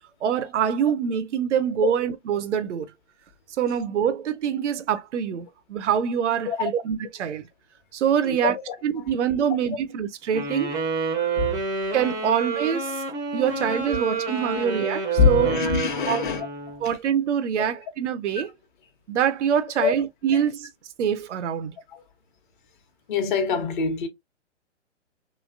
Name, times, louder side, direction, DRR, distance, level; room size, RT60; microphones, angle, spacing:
voice 1, 0.2-2.9 3.6-7.4 7.9-8.5 8.8-10.8 11.9-13.0 13.3-15.5 16.1-16.2 16.8-18.5 19.1-20.7 21.0-21.7, right 8 dB, 70° right, 0.5 m, -25 dB
voice 2, 8.2-8.7 11.4-11.6 13.4-13.5 14.5-14.6 15.2-16.5 19.8-20.1 20.3-20.4 21.9-22.0 23.1-24.1, left 6 dB, 40° left, 1.0 m, -24 dB
sound 1, 10.3-16.9, right 4 dB, 10° right, 0.5 m, -28 dB
3.1 x 2.7 x 2.4 m
figure-of-eight pair, 125°, 36 cm